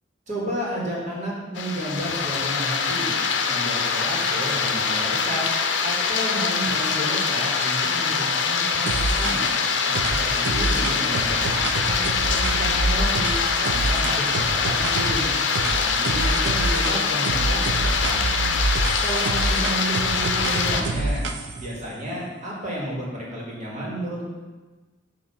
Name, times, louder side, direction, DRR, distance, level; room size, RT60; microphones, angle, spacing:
voice 1, 0.3-3.1 3.5-5.5 5.8-9.4 9.8-15.3 15.6-18.3 19.0-21.2 21.6-24.2, equal, 40° right, -5 dB, 1.8 m, -31 dB
sound 1, 1.6-20.8, left 5 dB, 75° left, 0.6 m, -24 dB
sound 2, 8.9-9.6 9.9-15.2 15.5-17.0 17.2-21.7, right 2 dB, 70° right, 0.5 m, -27 dB
6.5 x 3.0 x 5.6 m, 1.3 s
head